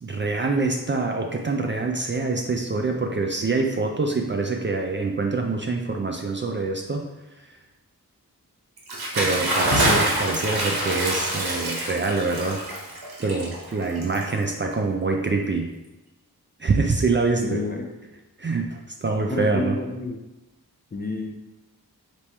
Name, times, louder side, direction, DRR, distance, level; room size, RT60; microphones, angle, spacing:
voice 1, 0.0-7.1 9.2-12.6 13.2-15.7 16.6-17.6 18.4-19.8, right 3 dB, 30° right, 2 dB, 0.4 m, -25 dB
Bathtub (filling or washing) / Splash splatter, 8.8-14.7, right 1 dB, 85° right, 0.9 m, -26 dB
voice 2, 17.4-17.8 19.3-20.2 20.9-21.4, left 2 dB, 25° left, 2 dB, 0.5 m, -29 dB
3.5 x 3.0 x 4.3 m, 1.0 s
wide cardioid pair, 90°, 38 cm